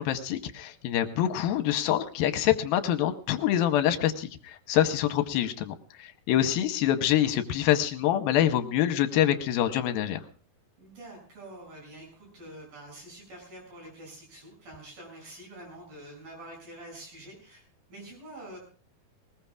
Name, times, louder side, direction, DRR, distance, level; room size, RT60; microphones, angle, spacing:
voice 1, 0.0-10.2, left 11 dB, 80° left, 9 dB, 2.6 m, -26 dB
voice 2, 10.8-17.6 17.9-18.6, right 1 dB, 70° right, -1 dB, 8.7 m, -46 dB
20.5 x 20.0 x 2.4 m, 0.39 s
omnidirectional pair, 4.3 m